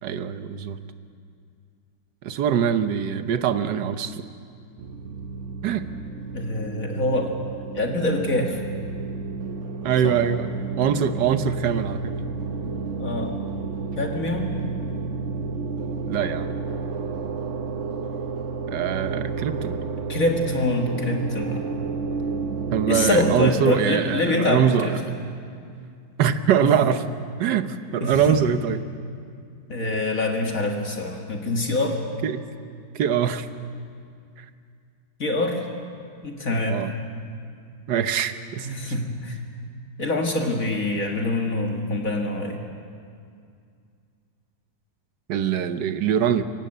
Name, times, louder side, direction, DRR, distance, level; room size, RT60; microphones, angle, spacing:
voice 1, 0.0-0.8 2.2-4.2 5.6-5.9 9.8-12.1 16.1-16.5 18.7-19.8 22.7-24.9 26.2-27.0 27.4-28.8 32.2-32.4 32.9-33.5 36.7-36.9 37.9-38.7 45.3-46.4, right 8 dB, 70° right, 10 dB, 1.5 m, -23 dB
sound 1, 4.8-23.5, right 4 dB, 50° right, 1.0 m, -31 dB
voice 2, 6.3-7.3 7.7-8.6 10.0-10.2 13.0-13.3 14.0-14.5 20.1-21.7 22.9-25.0 26.6-26.7 28.0-28.4 29.7-32.0 35.2-35.6 36.2-36.8 38.6-39.4 40.0-42.6, left 2 dB, 45° left, 2 dB, 2.2 m, -25 dB
24.0 x 17.5 x 7.9 m, 2.3 s
omnidirectional pair, 2.0 m